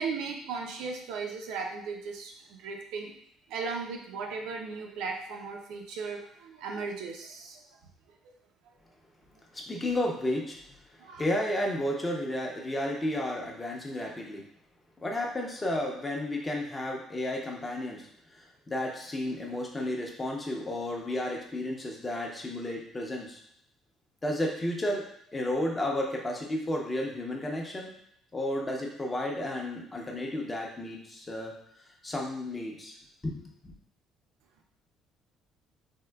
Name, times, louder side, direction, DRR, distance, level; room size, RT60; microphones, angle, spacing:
voice 1, 0.0-3.1 3.5-7.6 11.0-11.2, right 4 dB, 85° right, 2 dB, 0.5 m, -36 dB
voice 2, 9.5-10.6 11.2-14.4 15.0-18.1 18.3-23.4 24.2-25.0 25.3-27.9 28.3-31.5 32.0-32.9 33.2-33.7, left 1 dB, 15° left, 0 dB, 0.6 m, -32 dB
3.5 x 2.7 x 2.2 m, 0.72 s
cardioid pair, 135°, 0 cm